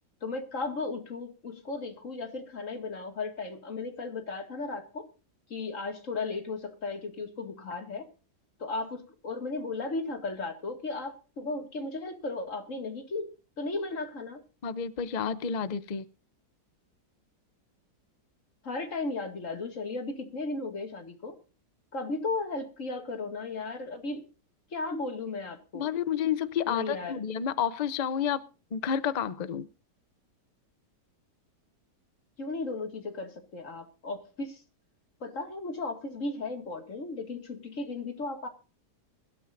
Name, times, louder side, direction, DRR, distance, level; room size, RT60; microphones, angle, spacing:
voice 1, 0.2-5.0 5.5-8.1 8.6-13.3 13.6-14.4 18.6-21.3 21.9-24.2 24.7-25.9 26.7-27.2 32.4-34.6 35.2-38.5, left 3 dB, 50° left, 5 dB, 2.4 m, -35 dB
voice 2, 14.6-16.1 25.7-28.4 28.7-29.7, left 8 dB, 80° left, 15 dB, 0.3 m, -30 dB
23.0 x 13.0 x 2.6 m, 0.33 s
omnidirectional pair, 1.8 m